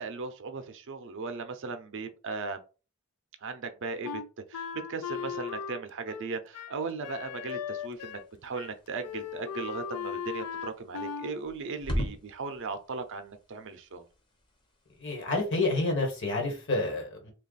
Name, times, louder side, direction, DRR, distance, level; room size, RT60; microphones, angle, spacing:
voice 1, 0.0-2.6 3.4-4.2 4.5-14.0, right 4 dB, 60° right, 0.5 m, -37 dB
Wind instrument woodwind instrument, 4.0-8.3 8.5-8.7 9.0-11.3, left 7 dB, 85° left, 0.3 m, -37 dB
sound 1, 7.8-16.7, equal, 25° left, 0.7 m, -42 dB
voice 2, 15.0-17.3, left 2 dB, 55° left, 1.3 m, -29 dB
3.0 x 2.3 x 4.0 m
head